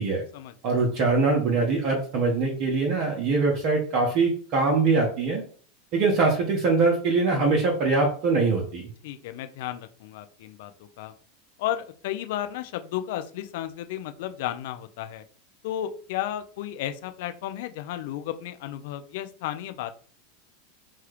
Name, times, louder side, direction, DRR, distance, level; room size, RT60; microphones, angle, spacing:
voice 1, 0.6-5.4 5.9-8.9, right 3 dB, 50° right, -1 dB, 0.8 m, -23 dB
voice 2, 9.0-11.1 11.6-15.2 15.6-19.9, left 12 dB, 65° left, 9 dB, 0.3 m, -33 dB
3.0 x 2.3 x 3.2 m, 0.44 s
hypercardioid pair, 95°, 0 cm